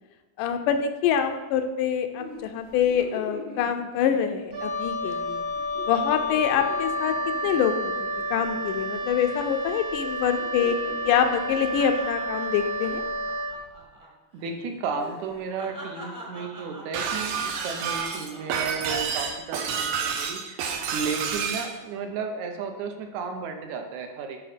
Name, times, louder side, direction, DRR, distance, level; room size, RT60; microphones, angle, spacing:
voice 1, 0.4-5.4 5.9-7.1 7.4-7.9 8.3-10.8 11.0-13.0, left 8 dB, 80° left, 7 dB, 2.1 m, -25 dB
sound 1, 2.2-4.7 5.0-5.2 5.5-9.0 9.3-9.7 10.0-14.1 14.3-14.5 15.0-19.1 19.6-20.0, equal, 20° right, 1.0 m, -44 dB
Wind instrument woodwind instrument, 4.5-13.6, equal, 50° right, 1.2 m, -30 dB
voice 2, 14.3-20.6 20.9-24.4, right 5 dB, 70° right, 5 dB, 2.0 m, -33 dB
Shatter, 16.9-21.7, right 6 dB, 85° right, 2.5 m, -29 dB
8.6 x 5.4 x 5.1 m, 1.2 s
omnidirectional pair, 3.8 m